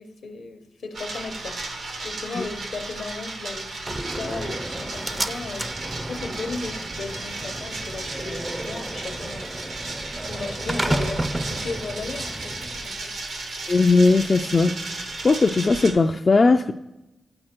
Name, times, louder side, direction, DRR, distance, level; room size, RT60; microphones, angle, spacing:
voice 1, 0.0-5.8 6.1-9.5 10.2-13.1, left 3 dB, 75° left, 0.8 m, -36 dB
sound 1, 0.9-15.9, right 2 dB, 80° right, 1.0 m, -34 dB
Slam, 3.9-12.9, right 1 dB, 25° right, 0.4 m, -32 dB
voice 2, 13.7-14.7 15.2-16.7, left 3 dB, 45° left, 0.3 m, -18 dB
7.7 x 4.2 x 4.4 m
supercardioid pair, 45°, 0 cm